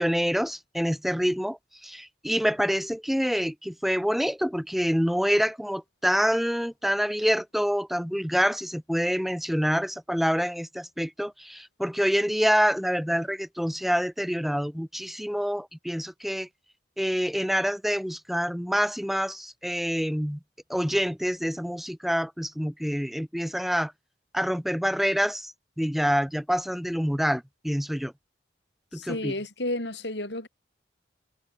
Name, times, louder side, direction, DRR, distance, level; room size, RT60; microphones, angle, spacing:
voice 1, 0.0-16.5 17.0-20.4 20.7-23.9 24.3-28.1 28.9-29.3, equal, ahead, 1.1 m, -26 dB
voice 2, 28.9-30.5, left 1 dB, 75° left, 7.1 m, -32 dB
head